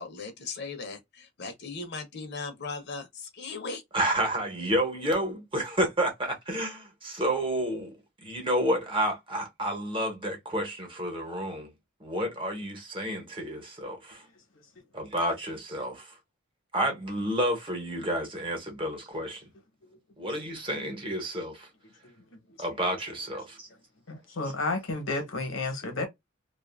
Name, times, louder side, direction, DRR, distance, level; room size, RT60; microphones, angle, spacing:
voice 1, 0.0-3.8, left 4 dB, 60° left, 0.8 m, -38 dB
voice 2, 3.9-7.9 8.2-11.7 12.0-14.2 14.9-16.1 16.7-19.4 20.2-21.7 22.6-23.7, right 1 dB, 25° right, 1.0 m, -30 dB
voice 3, 24.1-26.1, left 3 dB, 85° left, 1.1 m, -31 dB
2.6 x 2.4 x 2.4 m
head